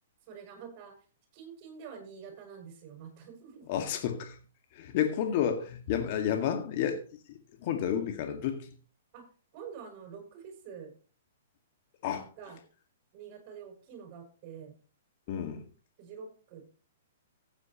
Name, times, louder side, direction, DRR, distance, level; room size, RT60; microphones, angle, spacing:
voice 1, 0.3-0.9 1.3-3.7 9.1-9.2 9.5-10.9 12.4-12.6 13.1-14.7 16.0-16.8, right 6 dB, 40° right, 6.7 m, -47 dB
voice 2, 3.7-4.4 4.7-7.0 7.3-8.7 12.0-12.3 15.3-15.6, left 9 dB, 50° left, 2.0 m, -31 dB
15.0 x 9.6 x 3.1 m
hypercardioid pair, 120°, 0 cm